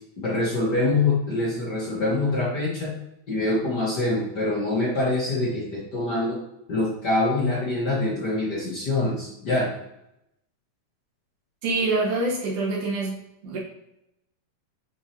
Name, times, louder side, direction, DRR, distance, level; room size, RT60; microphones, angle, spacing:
voice 1, 0.2-2.9 3.3-6.4 6.7-9.7, left 2 dB, 75° left, -6 dB, 0.9 m, -25 dB
voice 2, 11.6-13.2 13.4-13.6, right 2 dB, 60° right, -4 dB, 2.8 m, -25 dB
9.3 x 4.7 x 2.9 m, 0.82 s
omnidirectional pair, 4.4 m